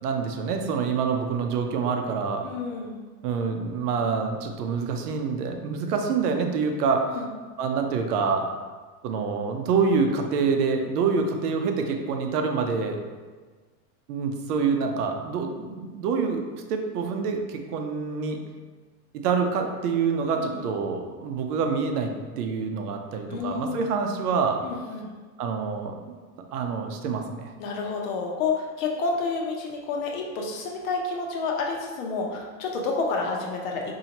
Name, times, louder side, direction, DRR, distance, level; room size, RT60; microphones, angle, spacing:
voice 1, 0.0-2.5 3.2-7.0 7.6-8.5 9.0-13.0 14.1-16.4 16.7-18.4 19.2-24.6 25.4-26.1 26.5-27.5, right 5 dB, 75° right, 4 dB, 0.7 m, -26 dB
voice 2, 2.4-3.0 7.1-7.3 20.4-20.6 23.3-23.8 24.6-25.1 27.6-33.9, left 4 dB, 55° left, 0 dB, 0.8 m, -29 dB
4.2 x 2.7 x 2.9 m, 1.4 s
supercardioid pair, 155°, 47 cm